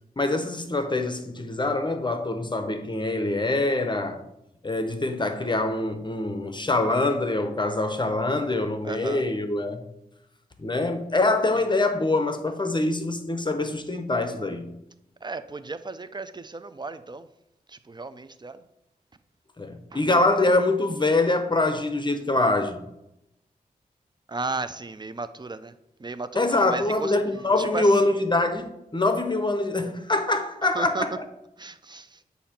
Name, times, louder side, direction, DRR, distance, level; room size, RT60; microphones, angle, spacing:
voice 1, 0.2-4.2 4.6-9.9 10.6-14.7 19.6-22.8 26.3-31.3, left 2 dB, 30° left, 0.8 m, -24 dB
voice 2, 8.8-9.3 11.5-11.7 15.2-17.3 17.7-18.6 19.9-20.0 24.3-25.7 26.0-27.2 27.6-28.1 30.7-31.1 31.6-32.2, right 3 dB, 30° right, 0.5 m, -34 dB
8.3 x 2.8 x 5.8 m
cardioid pair, 45°, 16 cm